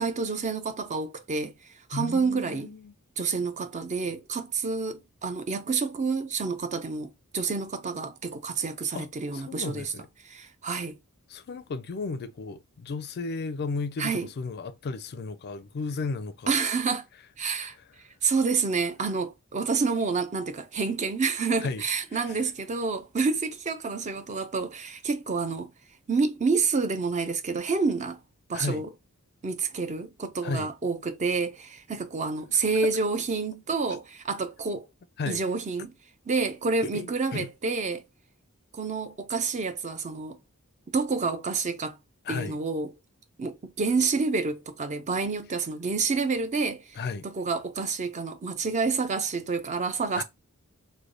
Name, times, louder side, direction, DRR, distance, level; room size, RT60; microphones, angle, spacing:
voice 1, 0.0-1.5 1.9-2.7 3.2-9.9 10.3-10.9 14.0-14.3 16.5-17.1 17.4-17.8 18.2-25.7 26.1-28.2 28.5-28.9 29.4-34.9 35.3-35.9 36.3-38.0 38.7-40.4 40.9-42.0 42.3-42.9 43.4-47.0 47.2-50.2, right 4 dB, 30° right, 0.5 m, -28 dB
voice 2, 1.9-2.9 8.9-9.1 9.3-10.1 11.3-16.5 17.5-17.7 21.6-21.8 22.1-22.4 28.5-28.8 30.4-30.7 32.8-32.9 35.2-35.4 36.8-37.5 42.2-42.6 47.0-47.3 50.2-50.3, left 4 dB, 45° left, 0.4 m, -34 dB
3.3 x 2.2 x 3.8 m
head